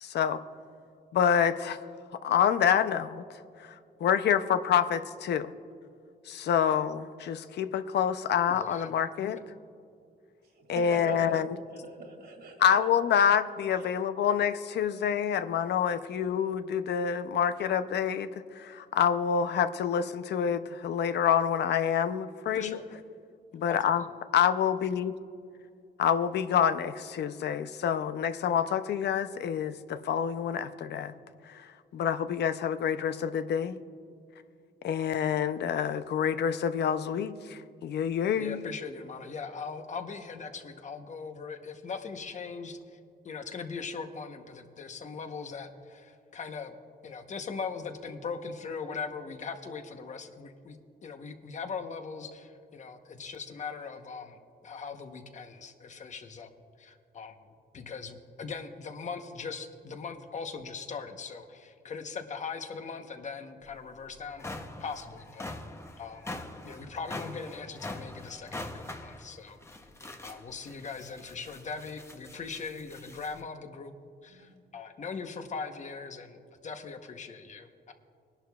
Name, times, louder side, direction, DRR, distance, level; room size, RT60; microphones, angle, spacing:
voice 1, 0.0-0.4 1.1-1.8 2.2-3.2 4.0-5.5 6.3-9.4 10.7-11.5 12.6-18.3 18.6-22.8 23.5-24.0 24.3-25.1 26.0-31.1 31.9-33.8 34.8-37.3 37.8-38.6, left 8 dB, 75° left, 12 dB, 0.5 m, -27 dB
voice 2, 8.5-8.9 22.5-23.0 23.6-24.1 38.3-43.0 43.2-46.7 47.0-50.8 51.0-54.4 54.6-56.5 56.8-57.4 57.7-64.5 64.8-65.7 66.0-69.6 70.2-73.9 74.2-77.9, left 5 dB, 45° left, 7 dB, 0.9 m, -40 dB
voice 3, 10.5-11.4 11.7-12.8 74.3-74.5, right 3 dB, 75° right, 3 dB, 2.3 m, -42 dB
sound 1, 63.7-63.8 64.2-73.4, left 2 dB, 15° left, 0.7 m, -43 dB
21.5 x 11.5 x 2.3 m, 2.4 s
wide cardioid pair, 145°, 17 cm